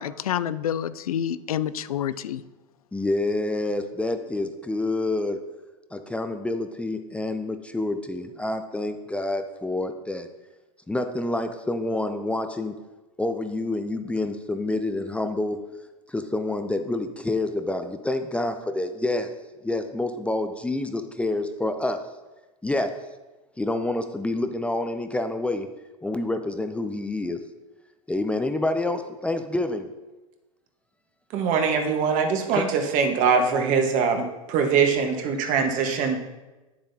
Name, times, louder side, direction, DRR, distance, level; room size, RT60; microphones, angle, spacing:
voice 1, 0.0-2.4, left 10 dB, 85° left, 0.4 m, -28 dB
voice 2, 2.9-5.4 5.9-10.3 10.9-12.7 13.2-15.6 16.1-19.3 19.6-22.0 22.6-22.9 23.6-25.7 26.0-27.4 28.1-29.9 32.5-32.6, left 2 dB, 5° left, 0.5 m, -27 dB
voice 3, 31.3-36.2, right 5 dB, 45° right, 1.4 m, -22 dB
9.5 x 7.3 x 2.8 m
hypercardioid pair, 100°, 18 cm